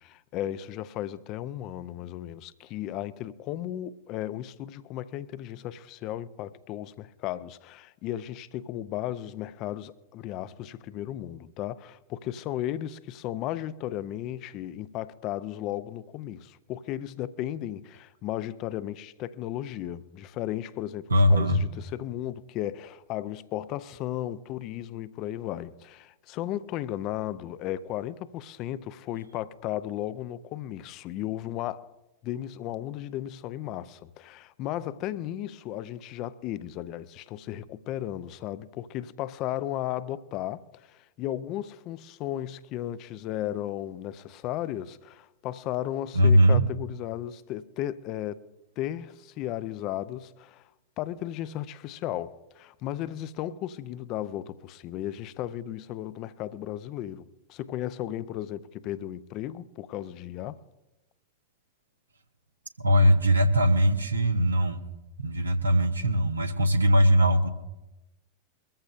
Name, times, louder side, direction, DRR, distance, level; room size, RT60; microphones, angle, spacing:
voice 1, 0.0-31.9 32.2-48.4 48.8-50.6 51.0-60.6, left 12 dB, 40° left, 0.6 m, -35 dB
voice 2, 21.1-21.6 46.1-46.7 62.8-64.8 65.2-67.5, equal, 80° right, 1.1 m, -21 dB
23.0 x 14.5 x 2.5 m
figure-of-eight pair, 90°, 0 cm